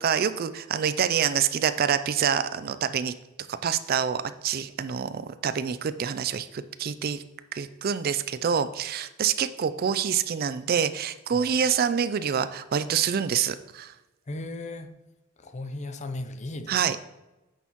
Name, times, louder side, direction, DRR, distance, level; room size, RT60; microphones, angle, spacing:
voice 1, 0.0-3.1 3.5-7.2 7.5-13.9 16.7-17.0, right 7 dB, 45° right, 13 dB, 0.4 m, -26 dB
voice 2, 14.3-14.9 15.4-17.0, left 2 dB, 35° left, 9 dB, 0.5 m, -36 dB
9.0 x 6.3 x 3.0 m, 1.0 s
head